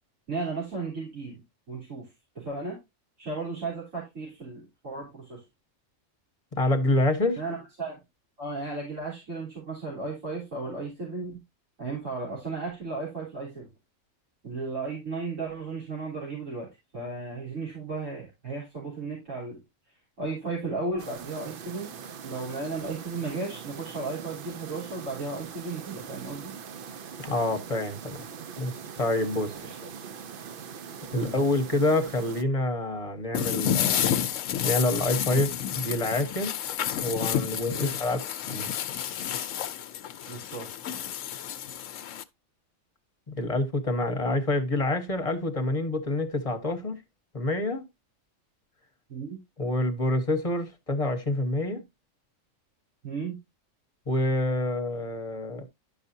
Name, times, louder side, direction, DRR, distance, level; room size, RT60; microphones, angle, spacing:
voice 1, 0.3-1.4 1.7-2.1 2.3-2.8 3.2-5.4 7.4-8.0 8.4-11.4 11.8-13.7 14.4-16.7 16.9-19.6 20.2-21.9 22.2-26.5 29.6-29.7 31.1-31.4 37.8-37.9 40.3-40.7 49.1-49.4 53.0-53.4, right 3 dB, 70° right, 4.0 m, -35 dB
voice 2, 6.5-7.4 27.2-28.3 28.6-29.5 31.1-34.2 34.6-36.5 37.0-38.2 38.4-38.7 43.3-47.0 47.3-47.8 49.6-51.8 54.1-55.6, left 2 dB, 30° left, 1.1 m, -27 dB
sound 1, 21.0-32.4, right 6 dB, 55° right, 0.6 m, -42 dB
sound 2, 33.3-42.2, left 9 dB, 75° left, 1.0 m, -30 dB
11.5 x 5.6 x 2.6 m
omnidirectional pair, 1.4 m